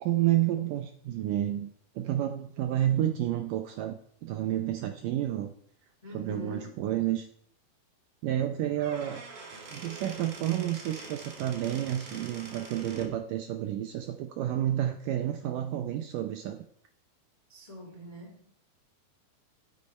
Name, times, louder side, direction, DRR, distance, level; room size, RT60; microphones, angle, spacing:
voice 1, 0.0-5.5 6.1-7.3 8.2-9.2 9.7-16.6, right 12 dB, 80° right, 6 dB, 1.9 m, -30 dB
voice 2, 6.0-6.8 17.5-18.6, left 2 dB, 35° left, 0 dB, 0.6 m, -44 dB
Squeak / Wood, 8.6-13.2, right 4 dB, 55° right, 3.4 m, -44 dB
11.5 x 6.6 x 5.4 m, 0.66 s
omnidirectional pair, 4.5 m